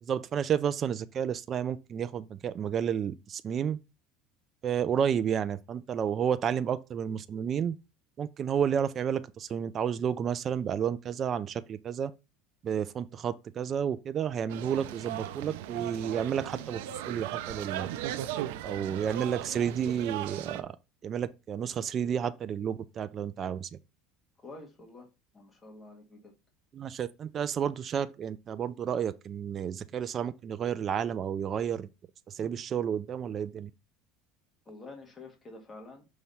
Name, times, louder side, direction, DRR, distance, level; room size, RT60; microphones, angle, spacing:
voice 1, 0.0-3.8 4.6-7.8 8.2-12.1 12.6-16.8 17.1-17.9 18.6-20.8 21.0-23.8 26.7-31.9 32.3-33.7, right 8 dB, 30° right, 0.4 m, -31 dB
street-preacher, 14.5-20.6, right 12 dB, 85° right, 0.5 m, -37 dB
voice 2, 24.4-25.1 25.3-26.3 34.6-36.1, left 2 dB, 15° left, 1.6 m, -48 dB
5.8 x 3.1 x 5.5 m
cardioid pair, 140°, 0 cm